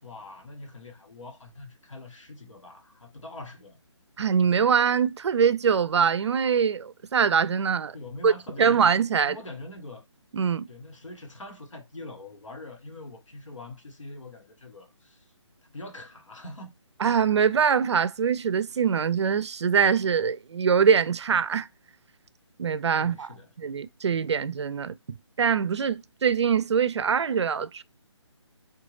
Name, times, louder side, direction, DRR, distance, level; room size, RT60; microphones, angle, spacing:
voice 1, 0.0-3.8 7.9-8.9 9.2-10.0 10.7-15.2 15.6-16.7 23.0-23.5, left 2 dB, 90° left, 1.2 m, -43 dB
voice 2, 4.2-7.9 8.2-8.3 8.6-9.4 10.3-10.7 17.0-21.7 22.6-23.3 23.6-27.8, right 6 dB, 65° right, 0.4 m, -23 dB
3.8 x 2.3 x 3.1 m
figure-of-eight pair, 160°, 16 cm